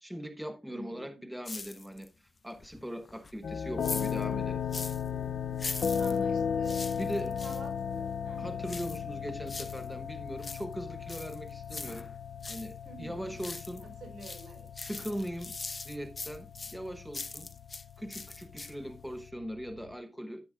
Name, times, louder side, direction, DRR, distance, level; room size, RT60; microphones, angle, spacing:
voice 1, 0.0-4.6 7.0-7.3 8.4-12.1 12.5-13.8 14.8-15.5 15.8-17.5 18.0-20.5, equal, 5° right, 1.1 m, -40 dB
voice 2, 0.7-1.2 6.0-8.5 12.8-13.4 13.8-14.7, right 2 dB, 90° right, 4.7 m, -48 dB
sound 1, 1.5-2.2 2.5-5.1 5.5-7.7 8.7-9.9 10.2-12.7 13.1-13.9 14.2-17.9 18.1-18.9 19.2-19.3, left 3 dB, 35° left, 0.7 m, -42 dB
sound 2, 3.4-19.9, left 7 dB, 75° left, 0.5 m, -36 dB
13.5 x 7.8 x 2.3 m
wide cardioid pair, 135°, 0 cm